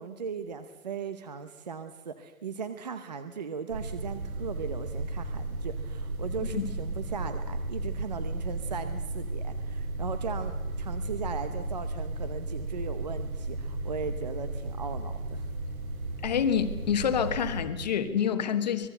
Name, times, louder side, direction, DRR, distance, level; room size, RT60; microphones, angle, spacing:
voice 1, 0.0-15.5, right 5 dB, 25° right, 10 dB, 0.8 m, -38 dB
sound 1, 3.7-17.6, right 2 dB, 65° right, 6.1 m, -34 dB
voice 2, 16.2-18.9, left 8 dB, 25° left, 9 dB, 1.4 m, -27 dB
25.5 x 19.5 x 7.9 m, 1.2 s
hypercardioid pair, 165°, 46 cm